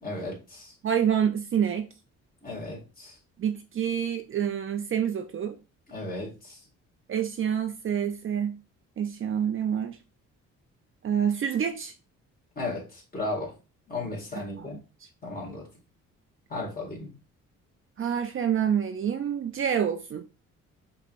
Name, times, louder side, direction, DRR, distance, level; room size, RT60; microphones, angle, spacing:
voice 1, 0.0-0.7 2.4-3.1 5.9-6.3 12.6-12.8 13.1-13.5 13.9-14.8 15.2-15.7 16.5-17.1, left 2 dB, 30° left, 2.2 m, -34 dB
voice 2, 0.8-1.9 3.4-5.6 7.1-8.6 9.0-10.0 11.0-11.9 14.3-14.8 18.0-20.2, right 8 dB, 45° right, 0.5 m, -27 dB
5.3 x 3.0 x 2.5 m
cardioid pair, 90°, 30 cm